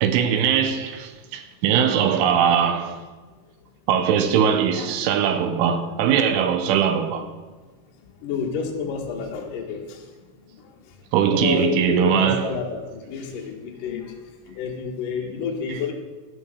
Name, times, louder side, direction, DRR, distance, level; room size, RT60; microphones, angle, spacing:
voice 1, 0.0-3.0 3.9-7.3 11.1-12.5, right 8 dB, 85° right, 3.2 m, -21 dB
voice 2, 8.0-15.9, left 6 dB, 60° left, 2.4 m, -30 dB
12.0 x 7.7 x 6.5 m
omnidirectional pair, 5.8 m